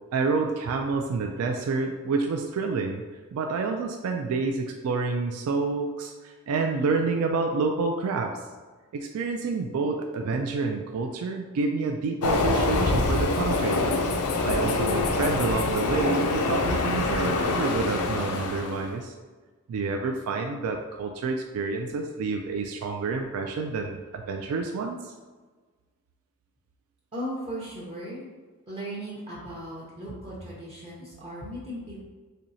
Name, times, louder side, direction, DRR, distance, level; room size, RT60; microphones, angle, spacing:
voice 1, 0.1-3.0 3.3-8.3 8.9-13.9 14.4-19.1 19.7-25.1, right 4 dB, 75° right, 3 dB, 0.3 m, -28 dB
Train, 12.2-18.9, left 3 dB, 85° left, 0.4 m, -25 dB
voice 2, 27.1-28.3 28.7-32.0, equal, 30° right, -7 dB, 0.6 m, -37 dB
4.3 x 2.7 x 2.6 m, 1.4 s
head